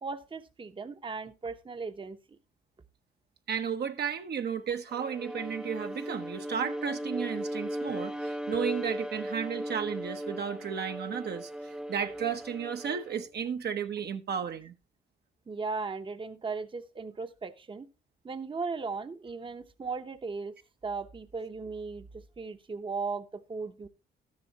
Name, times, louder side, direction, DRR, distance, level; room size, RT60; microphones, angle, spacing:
voice 1, 0.0-2.2 15.5-17.9 18.2-20.5 20.8-23.9, right 4 dB, 25° right, 0.9 m, -37 dB
voice 2, 3.5-11.5 11.9-14.7, right 7 dB, 55° right, 1.0 m, -33 dB
Bowed string instrument, 4.9-13.3, equal, 5° right, 0.6 m, -37 dB
12.5 x 10.5 x 2.9 m
cardioid pair, 90°, 20 cm